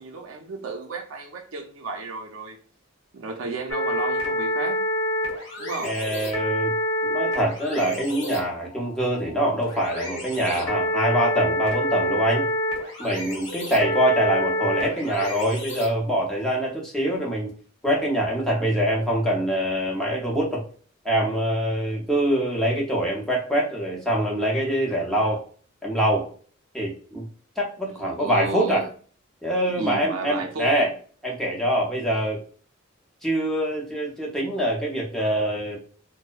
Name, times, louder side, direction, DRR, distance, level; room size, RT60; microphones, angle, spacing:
voice 1, 0.0-2.6 3.1-4.8 5.6-6.0 27.9-28.9 29.7-30.7, right 3 dB, 80° right, 0.5 m, -33 dB
sound 1, 3.7-16.5, left 1 dB, 65° left, 0.9 m, -28 dB
voice 2, 5.8-6.7 7.0-12.5 13.0-17.5 17.8-20.6 21.0-25.4 25.8-26.3 26.7-27.2 27.6-28.9 29.4-30.9 31.2-32.4 33.2-35.8, right 1 dB, ahead, 0.6 m, -24 dB
2.6 x 2.0 x 2.3 m
head